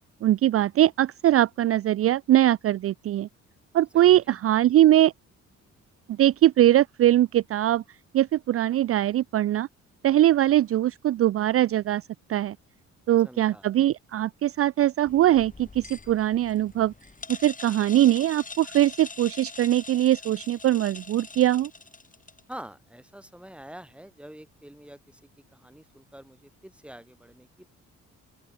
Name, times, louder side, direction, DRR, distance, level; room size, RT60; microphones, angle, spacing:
voice 1, 0.2-3.3 3.7-5.1 6.1-7.8 8.1-9.7 10.0-12.6 13.1-16.9 17.3-21.7, right 13 dB, 50° right, 0.4 m, -21 dB
voice 2, 3.9-4.4 13.2-13.6 22.5-25.2 25.5-27.5, right 1 dB, 5° right, 3.7 m, -46 dB
sound 1, 15.1-22.5, left 4 dB, 25° left, 7.1 m, -43 dB
open air
cardioid pair, 90°, 30 cm